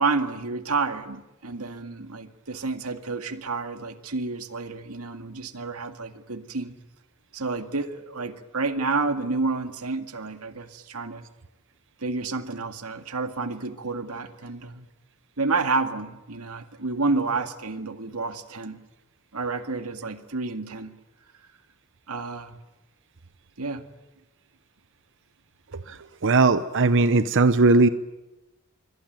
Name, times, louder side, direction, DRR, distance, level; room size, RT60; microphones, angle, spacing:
voice 1, 0.0-6.8 7.3-11.3 12.0-14.9 15.4-18.8 19.3-20.9 22.1-22.6 23.6-23.8, right 3 dB, 80° right, 8 dB, 2.0 m, -30 dB
voice 2, 25.7-27.9, right 3 dB, 60° right, 12 dB, 0.9 m, -19 dB
27.0 x 24.0 x 9.3 m, 1.0 s
head